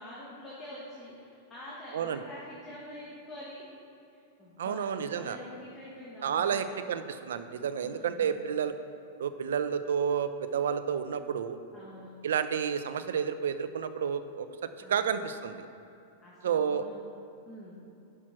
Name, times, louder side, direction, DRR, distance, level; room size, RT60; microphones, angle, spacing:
voice 1, 0.0-3.7 4.4-6.8 7.8-8.3 11.7-12.1 14.8-15.1 16.2-17.0 17.5-17.8, left 1 dB, 15° left, -6 dB, 1.8 m, -46 dB
voice 2, 4.6-5.4 6.2-8.7 9.2-11.6 12.2-14.5 14.9-15.6 16.4-16.9, right 7 dB, 85° right, 11 dB, 0.7 m, -30 dB
11.0 x 6.1 x 6.1 m, 2.8 s
supercardioid pair, 150°, 0 cm